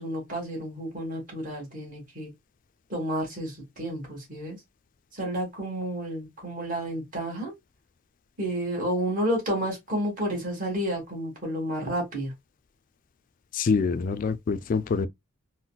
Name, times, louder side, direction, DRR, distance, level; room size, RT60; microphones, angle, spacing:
voice 1, 0.0-2.3 2.9-4.6 5.1-7.5 8.4-12.3, right 1 dB, 40° right, 1.6 m, -31 dB
voice 2, 13.5-15.1, left 5 dB, 40° left, 0.3 m, -25 dB
3.9 x 2.1 x 2.3 m
head